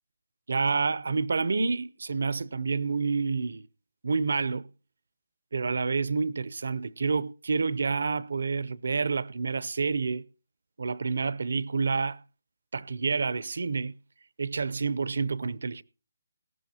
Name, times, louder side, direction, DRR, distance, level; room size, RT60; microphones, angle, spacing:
voice 1, 0.5-3.7 4.0-4.7 5.5-10.2 10.8-12.2 12.7-13.9 14.4-15.8, right 4 dB, 70° right, 0.6 m, -28 dB
19.0 x 14.0 x 2.8 m
hypercardioid pair, 165°, 0 cm